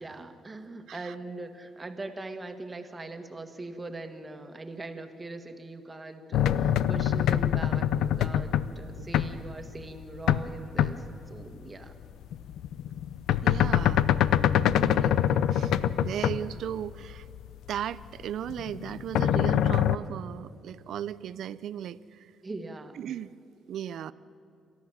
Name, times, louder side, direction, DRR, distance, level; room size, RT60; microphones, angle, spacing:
voice 1, 0.0-11.9 22.4-23.0, right 2 dB, 25° right, 7 dB, 1.8 m, -41 dB
sound 1, 6.3-10.5 10.8-11.2 12.0-18.1 18.5-20.0, left 10 dB, 85° left, 0.6 m, -25 dB
voice 2, 13.4-14.0 14.6-15.1 15.5-17.3 17.7-22.3 22.9-23.3 23.7-24.1, right 10 dB, 70° right, 17 dB, 0.5 m, -36 dB
28.0 x 13.5 x 7.2 m, 2.7 s
cardioid pair, 90°, 0 cm